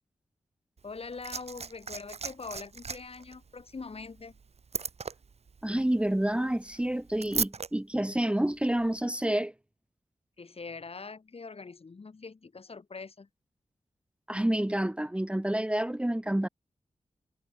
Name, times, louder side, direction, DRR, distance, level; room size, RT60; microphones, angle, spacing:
voice 1, 0.8-4.4 10.4-13.3, left 4 dB, 50° left, 3.6 m, -43 dB
Liquid, 0.8-7.7 8.8-8.9, right 5 dB, 55° right, 1.3 m, -38 dB
voice 2, 5.6-9.5 14.3-16.5, right 1 dB, 10° right, 1.0 m, -28 dB
wide cardioid pair, 105°, 13 cm